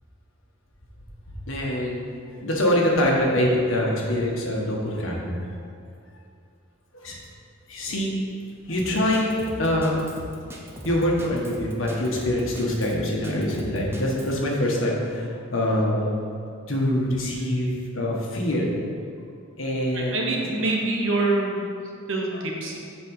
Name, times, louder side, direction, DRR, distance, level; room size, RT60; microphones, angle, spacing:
voice 1, 1.5-5.6 6.9-7.2 7.7-8.1 8.7-10.1 10.8-16.0 16.7-18.7 19.6-20.3, left 1 dB, 75° left, -2 dB, 1.4 m, -24 dB
Drum kit, 8.8-14.3, right 1 dB, 10° right, 0.7 m, -39 dB
voice 2, 19.9-21.6 22.1-22.8, right 2 dB, 70° right, 0 dB, 1.1 m, -25 dB
7.6 x 4.7 x 5.5 m, 2.4 s
head